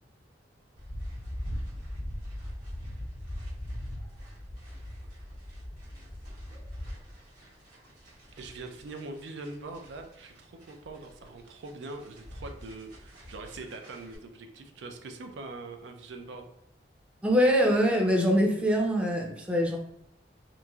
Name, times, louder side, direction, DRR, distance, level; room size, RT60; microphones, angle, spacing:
sound 1, 0.8-14.2, equal, 55° right, 1.5 m, -41 dB
voice 1, 8.4-16.5, right 3 dB, 90° right, 5 dB, 0.4 m, -43 dB
voice 2, 17.2-19.8, equal, 5° right, 0 dB, 0.4 m, -23 dB
3.0 x 2.5 x 2.3 m, 0.76 s
head